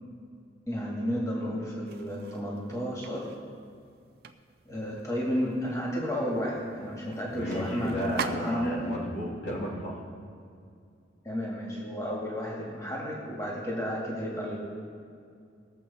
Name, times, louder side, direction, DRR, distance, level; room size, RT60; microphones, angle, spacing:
voice 1, 0.7-3.3 4.7-9.0 11.2-14.6, equal, 20° left, -4 dB, 2.1 m, -32 dB
sound 1, 1.9-8.9, right 5 dB, 55° right, 0.5 m, -44 dB
voice 2, 7.3-10.0, equal, 70° left, -4 dB, 2.7 m, -33 dB
19.0 x 7.5 x 4.3 m, 2.4 s
head